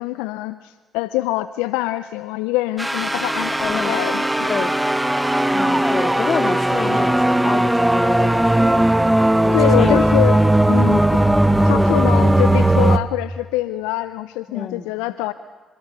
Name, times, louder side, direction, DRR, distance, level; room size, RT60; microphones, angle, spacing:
voice 1, 0.0-4.5 9.2-10.4 10.7-11.2 11.6-15.3, left 17 dB, 80° left, 14 dB, 0.7 m, -24 dB
sound 1, 2.8-13.0, right 1 dB, 10° right, 1.7 m, -17 dB
voice 2, 3.6-3.9 4.4-4.7 5.5-9.1 9.4-10.0 14.5-14.9, left 6 dB, 50° left, 10 dB, 2.6 m, -28 dB
29.5 x 27.5 x 6.9 m, 1.4 s
hypercardioid pair, 45°, 0 cm